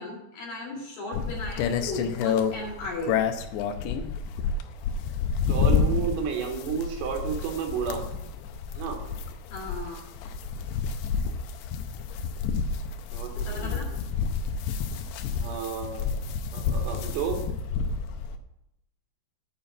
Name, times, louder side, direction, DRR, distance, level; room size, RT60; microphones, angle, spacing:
voice 1, 0.0-3.2 9.5-10.0 13.3-13.9, left 2 dB, 50° left, -4 dB, 3.2 m, -36 dB
sound 1, 1.1-18.4, left 6 dB, 90° left, 2.5 m, -29 dB
voice 2, 5.5-8.1 8.8-9.0 13.1-14.0 15.3-16.1 16.5-17.4, right 6 dB, 90° right, 2 dB, 4.2 m, -31 dB
9.2 x 5.5 x 7.6 m, 0.83 s
omnidirectional pair, 6.0 m